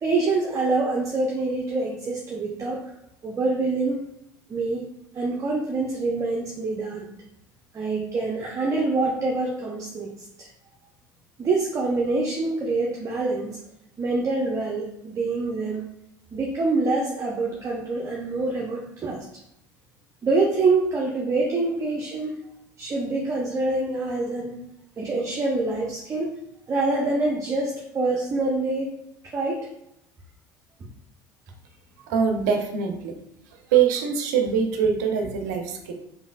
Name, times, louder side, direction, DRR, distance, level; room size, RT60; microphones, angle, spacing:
voice 1, 0.0-2.8 3.2-4.0 4.5-4.8 5.1-7.1 7.7-10.5 11.4-13.6 14.0-15.8 16.3-19.2 20.2-22.3 22.8-24.6 25.0-26.3 26.7-29.0 29.3-29.7, right 3 dB, 30° right, -2 dB, 0.7 m, -25 dB
voice 2, 32.1-33.1 33.5-35.9, right 7 dB, 65° right, 5 dB, 0.6 m, -23 dB
5.1 x 2.7 x 2.4 m, 0.81 s
figure-of-eight pair, 65°, 10 cm